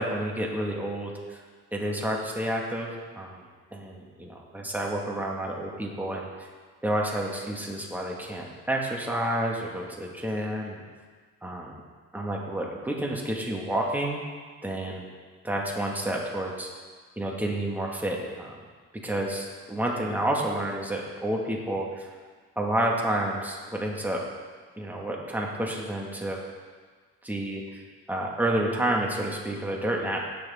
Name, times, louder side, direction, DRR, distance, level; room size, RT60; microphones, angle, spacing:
voice 1, 0.0-1.4 1.7-2.9 3.2-3.4 3.7-6.3 6.8-10.8 11.4-11.8 12.1-14.2 14.6-15.1 15.4-16.7 17.2-18.6 18.9-22.1 22.6-24.2 24.8-26.4 27.2-30.4, right 1 dB, 5° right, -2 dB, 2.1 m, -30 dB
18.5 x 6.6 x 3.9 m, 1.5 s
cardioid pair, 90°, 30 cm